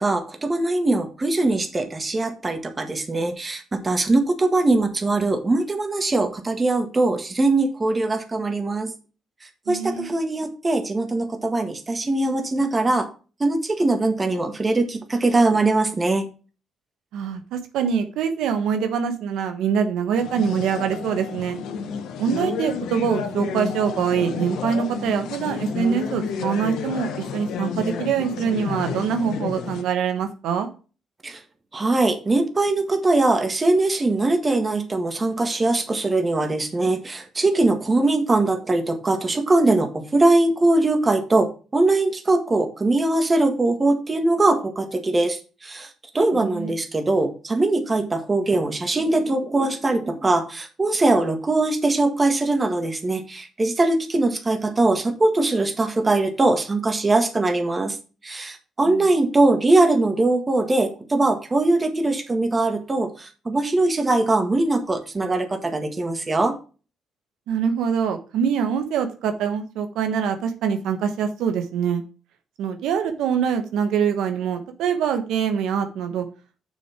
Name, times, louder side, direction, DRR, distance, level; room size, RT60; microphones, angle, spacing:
voice 1, 0.0-8.9 9.7-13.1 13.4-16.3 31.2-31.4 31.7-45.9 46.1-58.0 58.2-66.5, right 2 dB, 25° right, 6 dB, 1.7 m, -21 dB
voice 2, 9.7-10.1 17.1-21.6 22.2-30.7 46.3-46.7 58.8-59.0 67.5-72.0 72.6-76.2, right 7 dB, 85° right, 7 dB, 1.2 m, -24 dB
sound 1, 20.2-29.8, left 7 dB, 85° left, 1.2 m, -31 dB
6.7 x 6.3 x 4.5 m, 0.34 s
cardioid pair, 90°, 0 cm